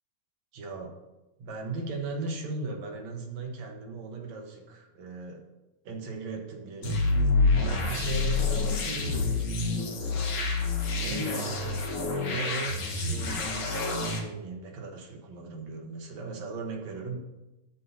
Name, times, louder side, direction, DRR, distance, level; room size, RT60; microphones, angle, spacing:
voice 1, 0.5-0.9 1.4-5.4 5.9-7.0 7.5-10.2 10.9-17.2, right 3 dB, 65° right, 2 dB, 2.4 m, -37 dB
sound 1, 6.8-14.2, left 3 dB, 55° left, 2.0 m, -28 dB
13.0 x 11.0 x 2.8 m, 1.0 s
omnidirectional pair, 3.5 m